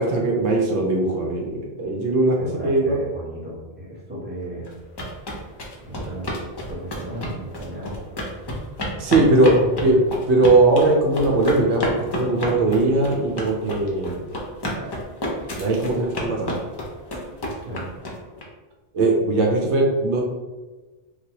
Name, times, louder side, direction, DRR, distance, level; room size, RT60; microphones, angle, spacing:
voice 1, 0.0-2.3 2.6-3.0 9.0-9.6 9.8-10.0 10.3-14.2 15.6-16.5 18.9-20.2, right 2 dB, 75° right, 0 dB, 0.9 m, -19 dB
voice 2, 2.4-4.7 5.8-8.3 9.3-10.0 14.7-15.0 17.6-17.9, right 1 dB, 10° right, -8 dB, 0.9 m, -35 dB
sound 1, 4.7-18.4, left 1 dB, 35° left, 0.4 m, -30 dB
3.2 x 2.1 x 2.8 m, 1.2 s
omnidirectional pair, 1.2 m